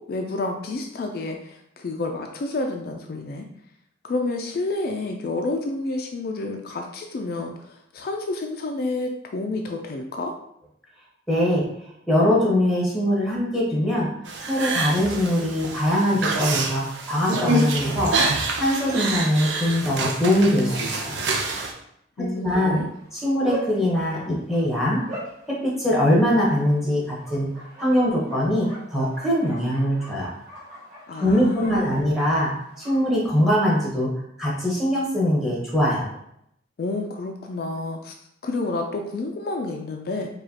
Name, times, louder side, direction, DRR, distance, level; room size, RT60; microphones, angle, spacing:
voice 1, 0.0-3.5 4.0-10.3 22.2-22.9 31.1-32.1 36.8-38.1 38.4-40.3, left 2 dB, 55° left, 3 dB, 0.3 m, -29 dB
voice 2, 11.3-11.6 12.1-14.1 14.4-21.3 22.4-22.8 23.1-25.0 25.6-27.5 27.8-30.3 31.2-32.5 32.8-34.1 34.4-36.1, equal, ahead, -5 dB, 1.0 m, -22 dB
sound 1, 14.3-21.7, right 2 dB, 80° right, 0.6 m, -27 dB
Bark, 22.7-34.0, right 1 dB, 40° right, 1.2 m, -42 dB
4.9 x 2.3 x 2.8 m, 0.75 s
head